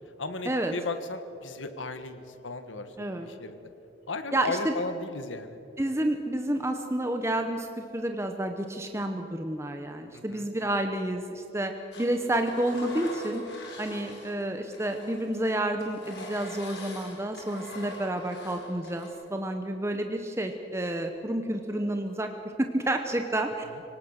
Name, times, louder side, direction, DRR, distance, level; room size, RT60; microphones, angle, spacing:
voice 1, 0.2-2.9 3.2-3.7 4.1-5.6 10.1-10.5 23.7-23.8, left 3 dB, 85° left, 9 dB, 1.5 m, -35 dB
voice 2, 3.0-3.3 4.3-4.7 5.8-13.4 13.8-22.3 22.6-23.6, right 1 dB, 15° right, 5 dB, 0.9 m, -30 dB
Engine, 11.9-14.4 14.7-19.1, left 2 dB, 60° left, 4.6 m, -43 dB
25.5 x 18.0 x 6.5 m, 2.8 s
head